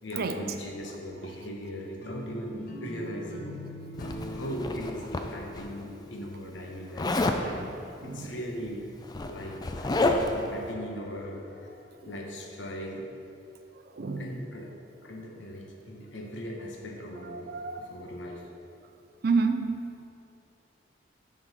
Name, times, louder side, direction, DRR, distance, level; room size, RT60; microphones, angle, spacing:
voice 1, 0.0-3.6 4.3-8.8 9.3-13.1 14.2-14.7 15.0-18.5, equal, 80° left, 1 dB, 1.0 m, -39 dB
sound 1, 2.0-7.1, left 1 dB, 55° left, 0.8 m, -42 dB
Zipper (clothing), 4.0-5.6 7.0-7.4 8.6-8.7 9.0-10.5, left 2 dB, 20° left, 0.4 m, -29 dB
voice 2, 8.0-8.3 14.0-14.3 17.3-17.9 19.2-19.9, right 4 dB, 55° right, 7 dB, 0.4 m, -29 dB
10.5 x 3.8 x 4.1 m, 2.7 s
head